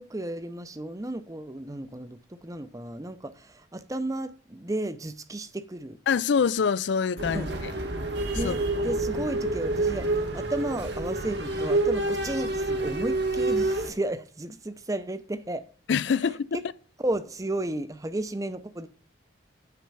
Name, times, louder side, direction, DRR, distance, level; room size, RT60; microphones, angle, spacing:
voice 1, 0.0-6.0 7.3-7.5 8.3-15.6 16.5-16.6 17.0-18.9, right 1 dB, 15° right, 0.6 m, -33 dB
voice 2, 6.1-7.5 8.3-8.8 15.9-16.6, left 6 dB, 65° left, 0.4 m, -25 dB
sound 1, 7.2-13.9, right 2 dB, 60° right, 1.4 m, -28 dB
9.4 x 4.5 x 6.8 m
head